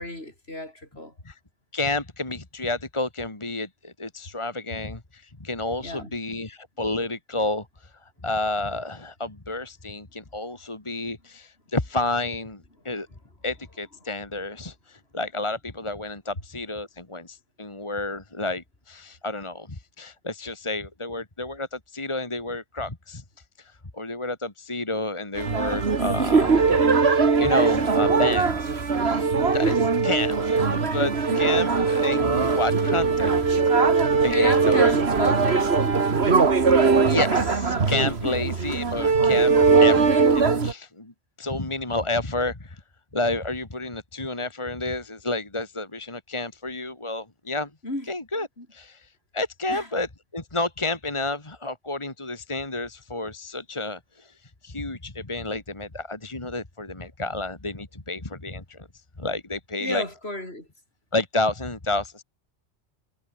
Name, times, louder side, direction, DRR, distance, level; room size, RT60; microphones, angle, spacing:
voice 1, 0.0-1.1 5.8-6.1 31.3-31.6 34.3-36.0 38.2-38.5 47.8-48.1 48.6-48.7 49.7-49.9 59.8-60.7, left 1 dB, 65° left, 7.7 m, -32 dB
voice 2, 1.7-13.1 13.4-23.2 23.6-33.6 34.2-34.8 36.7-41.1 41.4-42.8 43.1-47.7 48.1-50.1 50.3-54.3 54.6-58.9 59.2-60.0 61.1-62.2, left 2 dB, 25° left, 2.3 m, -30 dB
sound 1, 25.4-40.7, right 4 dB, 65° right, 2.1 m, -20 dB
omnidirectional pair, 1.2 m